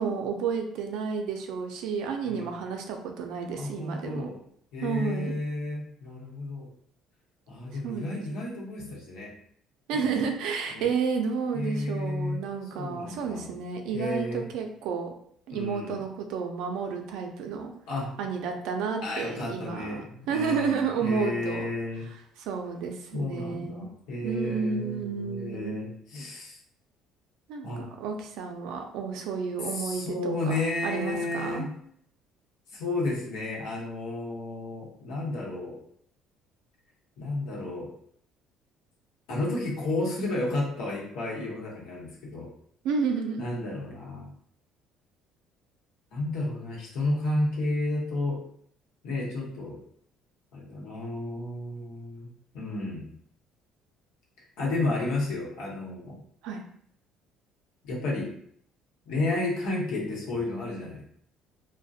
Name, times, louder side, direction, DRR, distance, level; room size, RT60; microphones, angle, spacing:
voice 1, 0.0-4.3 4.8-5.3 7.8-8.2 9.9-15.1 15.5-17.7 18.2-21.7 22.4-23.9 24.2-25.8 27.5-30.5 30.8-31.7 42.8-43.4 56.4-56.6, right 5 dB, 65° right, 4 dB, 0.4 m, -31 dB
voice 2, 2.2-2.6 3.5-4.4 4.7-6.7 7.5-9.3 9.9-10.1 10.7-10.9 11.5-12.4 12.8-13.5 13.9-14.5 15.5-16.0 17.9-18.2 19.0-22.1 23.1-26.6 27.6-27.8 29.6-31.7 32.7-35.8 37.2-37.9 39.3-42.5 43.4-44.3 46.1-48.4 49.0-49.8 50.5-52.3 52.5-53.1 54.6-56.2 57.8-58.3 59.1-61.0, left 2 dB, 90° left, -4 dB, 0.9 m, -32 dB
2.4 x 2.1 x 2.6 m, 0.65 s
cardioid pair, 175°, 0 cm